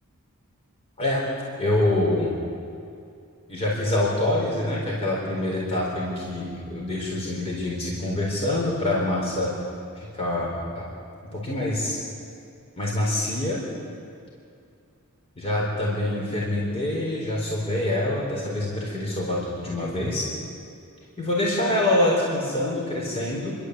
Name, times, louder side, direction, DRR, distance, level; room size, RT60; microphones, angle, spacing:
voice 1, 1.6-2.3 3.5-9.5 10.0-10.9 11.3-12.0 12.8-13.6 15.4-20.3 21.2-23.6, left 1 dB, 30° left, -4 dB, 4.1 m, -25 dB
29.5 x 12.5 x 8.0 m, 2.5 s
head